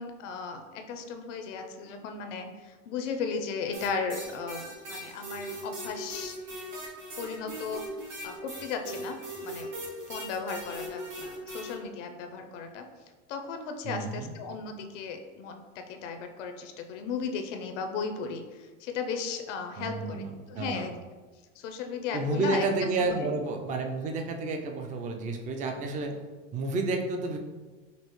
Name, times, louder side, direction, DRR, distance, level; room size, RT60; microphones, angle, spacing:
voice 1, 0.0-6.4 7.2-7.8 8.2-9.7 10.1-12.8 13.3-20.9 21.6-22.7 23.0-23.3 26.0-26.1, left 5 dB, 90° left, 6 dB, 0.6 m, -36 dB
sound 1, 3.7-11.7, right 1 dB, 90° right, 1.3 m, -40 dB
voice 2, 13.8-14.3 19.8-20.9 22.1-26.2 26.5-27.4, right 3 dB, 25° right, 4 dB, 0.3 m, -31 dB
5.1 x 2.0 x 3.0 m, 1.3 s
supercardioid pair, 120°, 35 cm